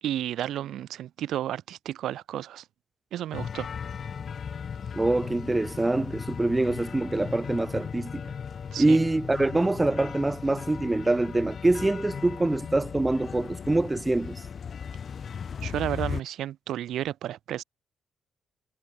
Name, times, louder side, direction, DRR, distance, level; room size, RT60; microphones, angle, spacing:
voice 1, 0.0-2.6 3.1-3.7 8.7-9.0 15.6-17.6, right 12 dB, 75° right, 1.6 m, -32 dB
sound 1, 3.3-16.2, left 7 dB, 50° left, 2.8 m, -37 dB
voice 2, 4.9-8.2 8.8-14.4, right 2 dB, 15° right, 0.7 m, -25 dB
cardioid pair, 90°, 0 cm